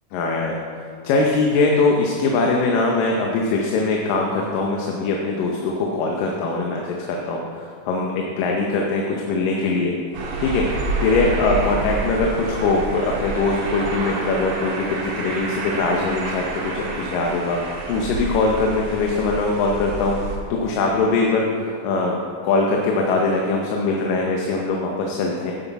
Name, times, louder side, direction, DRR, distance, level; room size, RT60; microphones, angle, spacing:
voice 1, 0.1-0.5 1.0-9.9 10.4-22.2 22.4-25.5, left 3 dB, 85° left, 0 dB, 2.5 m, -22 dB
sound 1, 10.1-20.4, right 2 dB, 65° right, 2.8 m, -28 dB
9.5 x 7.9 x 4.6 m, 2.2 s
omnidirectional pair, 3.9 m